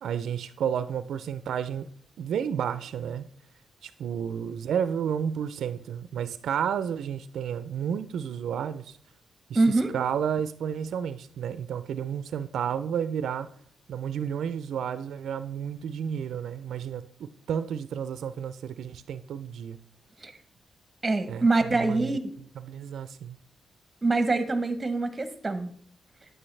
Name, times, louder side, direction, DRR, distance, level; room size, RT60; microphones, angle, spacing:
voice 1, 0.0-1.9 2.2-3.3 3.8-9.0 9.5-13.5 13.9-19.8 21.3-22.1 22.6-23.4, right 8 dB, 85° right, 13 dB, 0.4 m, -31 dB
voice 2, 9.5-9.9 20.2-20.3 21.0-22.3 24.0-25.7, right 3 dB, 20° right, 10 dB, 0.9 m, -24 dB
8.9 x 8.6 x 3.2 m, 0.62 s
cardioid pair, 110°, 0 cm